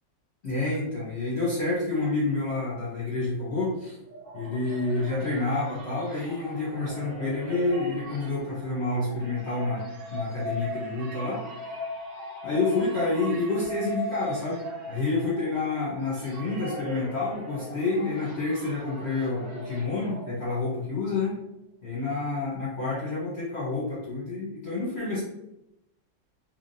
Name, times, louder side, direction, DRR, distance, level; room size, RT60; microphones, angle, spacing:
voice 1, 0.4-4.0 4.3-11.8 12.4-21.4 21.8-25.2, left 3 dB, 45° left, -8 dB, 1.1 m, -29 dB
sound 1, 3.9-20.8, left 1 dB, 60° right, 1.2 m, -39 dB
3.5 x 3.2 x 2.7 m, 0.84 s
omnidirectional pair, 1.9 m